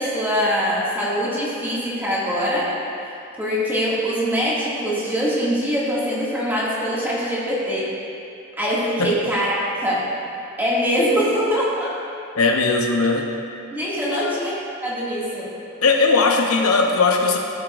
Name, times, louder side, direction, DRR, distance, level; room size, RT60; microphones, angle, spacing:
voice 1, 0.0-2.7 3.4-7.9 8.6-10.1 10.6-11.9 13.7-15.5 16.2-16.3, equal, 10° right, -9 dB, 2.2 m, -23 dB
voice 2, 12.3-13.3 14.1-14.4 15.8-17.4, left 3 dB, 85° left, 1 dB, 0.9 m, -19 dB
15.0 x 7.8 x 2.6 m, 2.6 s
head